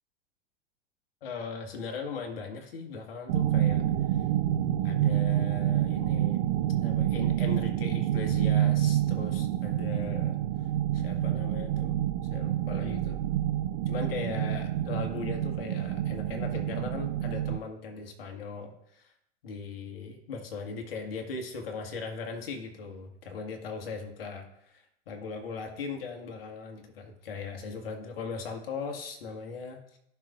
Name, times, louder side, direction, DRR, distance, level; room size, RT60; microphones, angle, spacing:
voice 1, 1.2-3.8 4.8-6.4 6.8-10.4 10.9-12.0 12.3-13.2 13.9-19.1 19.4-30.0, left 4 dB, 60° left, 4 dB, 1.8 m, -39 dB
sound 1, 3.3-17.6, right 12 dB, 40° right, 0.5 m, -28 dB
14.5 x 5.9 x 2.5 m, 0.75 s
figure-of-eight pair, 95°, 33 cm